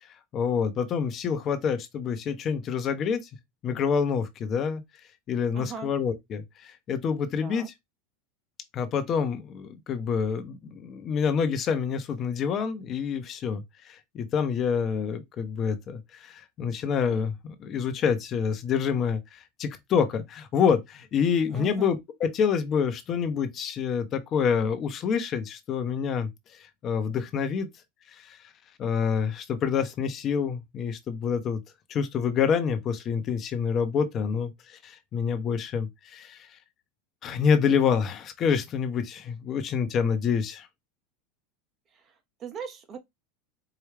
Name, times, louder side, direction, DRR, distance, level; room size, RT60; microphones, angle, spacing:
voice 1, 0.0-3.3 3.6-4.8 5.3-7.6 8.7-27.7 28.1-28.5 28.8-31.6 31.9-36.6 37.2-40.7, left 6 dB, 40° left, 0.7 m, -27 dB
voice 2, 5.5-5.9 7.4-7.7 21.5-21.9 41.9-43.0, right 6 dB, 35° right, 0.9 m, -39 dB
4.7 x 2.2 x 3.2 m
supercardioid pair, 110°, 0 cm